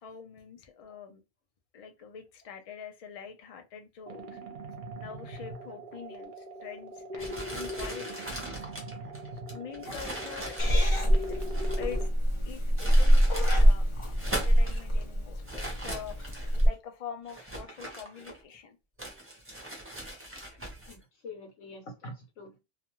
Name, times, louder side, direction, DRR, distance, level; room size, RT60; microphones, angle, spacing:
voice 1, 0.0-1.2 1.7-4.4 4.9-8.4 9.5-11.4 11.8-12.1 12.4-13.9 14.2-18.8, left 7 dB, 65° left, 0.3 m, -45 dB
sound 1, 4.1-12.1, right 1 dB, 50° right, 0.7 m, -41 dB
sound 2, 7.2-11.9 12.6-13.7 14.1-14.8 15.4-16.6 17.3-18.6 19.0-21.0, right 1 dB, 15° right, 0.5 m, -40 dB
Purr / Meow, 10.6-16.7, equal, 30° left, 0.7 m, -24 dB
voice 2, 20.9-22.6, left 1 dB, 85° left, 1.1 m, -45 dB
2.4 x 2.4 x 2.9 m
omnidirectional pair, 1.2 m